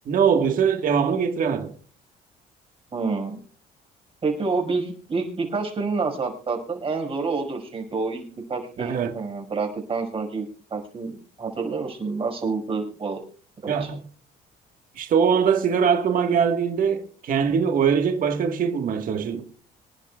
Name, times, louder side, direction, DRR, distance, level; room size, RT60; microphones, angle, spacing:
voice 1, 0.1-1.7 8.8-9.1 13.7-14.0 15.0-19.4, right 7 dB, 55° right, 1.6 m, -22 dB
voice 2, 2.9-3.4 4.2-13.2 13.6-13.9, right 4 dB, 35° right, 5.5 m, -28 dB
26.5 x 10.5 x 2.4 m
cardioid pair, 110°, 17 cm